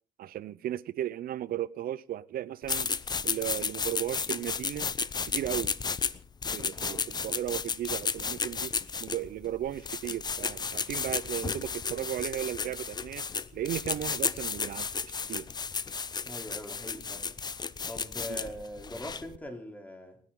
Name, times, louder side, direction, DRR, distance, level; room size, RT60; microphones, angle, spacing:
voice 1, 0.2-2.9 3.2-4.9 5.2-5.7 6.5-8.7 9.0-13.3 13.5-15.5 18.3-18.4, right 12 dB, 60° right, 0.7 m, -35 dB
sound 1, 2.6-19.4, left 5 dB, 25° left, 0.6 m, -33 dB
voice 2, 6.7-7.1 16.3-17.3 17.9-20.2, left 1 dB, 10° left, 3.5 m, -42 dB
28.5 x 9.8 x 3.9 m
cardioid pair, 110°, 17 cm